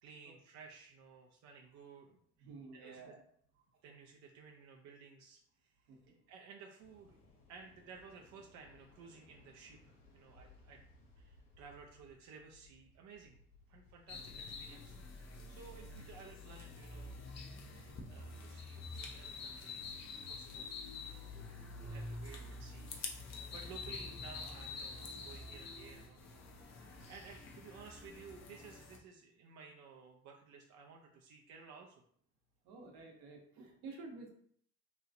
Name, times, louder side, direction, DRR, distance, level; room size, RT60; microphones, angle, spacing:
voice 1, 0.0-3.1 3.8-7.2 7.5-10.8 11.2-13.4 13.7-17.3 17.7-20.0 20.3-20.7 21.0-26.2 26.7-32.0, right 5 dB, 45° right, 1 dB, 0.5 m, -56 dB
voice 2, 2.4-3.2 5.9-6.2 13.7-13.8 32.6-34.3, right 3 dB, 60° right, 1 dB, 0.9 m, -51 dB
Waves surf, 6.8-17.0, left 2 dB, 65° left, 0.9 m, -65 dB
sound 1, 14.1-29.0, left 3 dB, 40° left, 0.6 m, -47 dB
3.0 x 2.3 x 2.5 m, 0.63 s
figure-of-eight pair, 55°, 43 cm